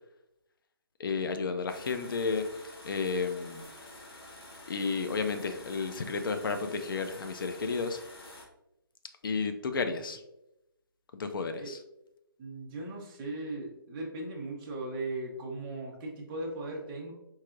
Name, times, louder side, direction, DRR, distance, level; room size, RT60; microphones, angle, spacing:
voice 1, 1.0-3.7 4.7-8.0 9.2-10.2 11.1-11.8, left 4 dB, 65° left, 7 dB, 0.5 m, -32 dB
sound 1, 1.7-8.4, left 1 dB, 85° left, 1.1 m, -49 dB
voice 2, 12.4-17.1, right 2 dB, 20° right, -1 dB, 0.6 m, -38 dB
4.6 x 2.7 x 2.5 m, 0.87 s
hypercardioid pair, 160°, 12 cm